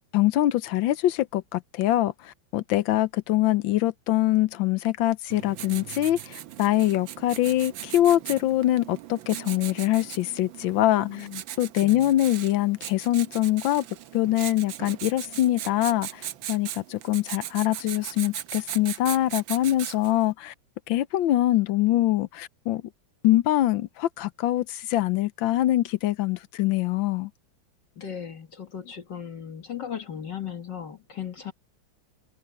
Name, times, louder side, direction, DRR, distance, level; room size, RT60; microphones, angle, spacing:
voice 1, 0.1-11.1 11.6-13.8 14.1-20.5 20.9-22.8 23.2-27.3, left 14 dB, 80° left, 1.4 m, -24 dB
Writing, 5.3-20.2, right 12 dB, 80° right, 1.6 m, -39 dB
voice 2, 11.0-11.4 11.8-12.1 28.0-31.5, left 8 dB, 65° left, 2.2 m, -37 dB
omnidirectional pair, 2.1 m